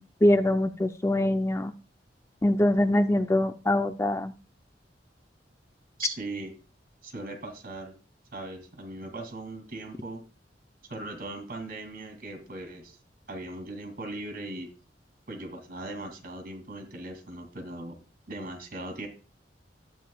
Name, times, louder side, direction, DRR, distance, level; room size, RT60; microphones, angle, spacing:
voice 1, 0.0-1.7 2.4-4.3, left 1 dB, 15° left, 8 dB, 0.5 m, -24 dB
voice 2, 6.0-6.5 7.0-7.9 8.3-10.2 10.9-13.0 13.3-14.7 15.3-18.0 18.3-19.1, right 2 dB, 55° right, 4 dB, 2.5 m, -39 dB
13.5 x 9.0 x 2.3 m, 0.32 s
head